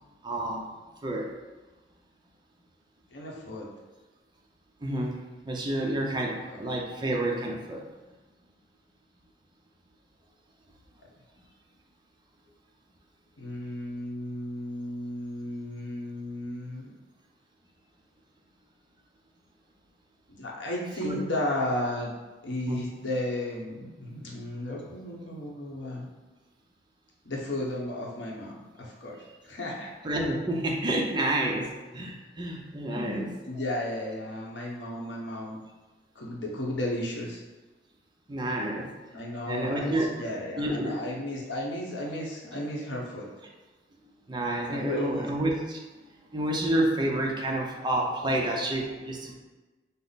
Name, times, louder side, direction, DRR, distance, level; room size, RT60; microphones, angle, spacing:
voice 1, 0.2-0.7 1.0-1.3 4.8-5.2 5.5-7.9 21.0-21.2 22.7-22.8 30.0-33.3 38.3-38.9 39.5-40.1 40.6-40.9 44.3-45.8 46.3-49.4, right 1 dB, 25° right, 0 dB, 0.6 m, -29 dB
voice 2, 3.1-3.7 6.4-6.6 13.4-16.9 20.3-22.1 22.4-26.1 27.2-29.9 32.9-35.6 36.1-37.4 39.1-43.3 44.7-45.3, left 1 dB, 80° left, -2 dB, 0.9 m, -34 dB
5.5 x 2.0 x 4.0 m, 1.2 s
head